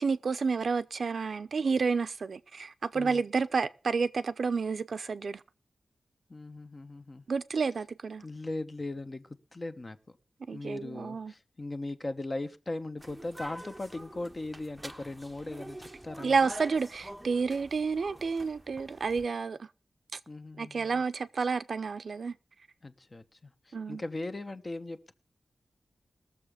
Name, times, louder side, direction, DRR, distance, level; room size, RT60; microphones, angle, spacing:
voice 1, 0.0-5.4 7.3-8.2 10.5-11.3 16.2-19.6 20.6-22.3 23.7-24.0, right 5 dB, 70° right, 0.6 m, -30 dB
voice 2, 6.3-7.2 8.2-10.2 10.5-16.5 20.3-21.0 22.8-25.1, left 2 dB, 35° left, 1.1 m, -39 dB
sound 1, 13.0-19.3, right 1 dB, 15° right, 0.8 m, -46 dB
20.5 x 7.1 x 5.0 m
wide cardioid pair, 105°, 0 cm